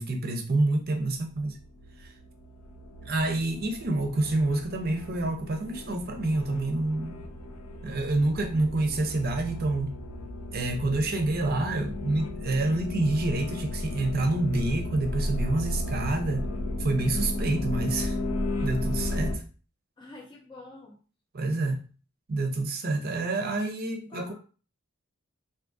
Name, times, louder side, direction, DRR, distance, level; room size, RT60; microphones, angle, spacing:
voice 1, 0.0-1.6 2.0-2.1 3.0-7.2 7.8-9.9 10.5-16.4 16.8-18.2 18.6-19.4 21.3-21.8 22.3-24.3, right 2 dB, 45° right, 0.5 m, -27 dB
sound 1, 1.1-19.4, left 1 dB, 75° left, 0.5 m, -34 dB
voice 2, 20.0-21.0 24.1-24.3, left 2 dB, 20° left, 0.4 m, -46 dB
3.6 x 2.6 x 2.5 m
head